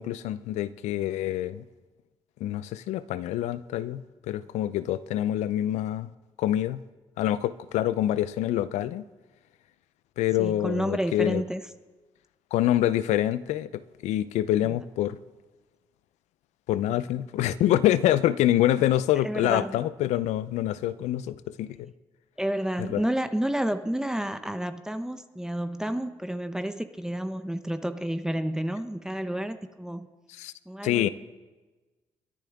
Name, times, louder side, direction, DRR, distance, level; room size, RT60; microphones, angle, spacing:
voice 1, 0.0-1.6 2.4-6.1 6.4-6.8 7.2-9.0 10.2-11.4 12.5-15.2 16.7-21.9 22.8-23.0 30.3-30.5 30.8-31.1, left 13 dB, 85° left, 15 dB, 0.5 m, -26 dB
voice 2, 10.4-11.6 14.6-14.7 19.2-19.8 22.4-30.1 30.7-31.1, right 1 dB, 5° right, 9 dB, 0.8 m, -30 dB
23.0 x 10.5 x 3.6 m, 1.2 s
cardioid pair, 70°, 11 cm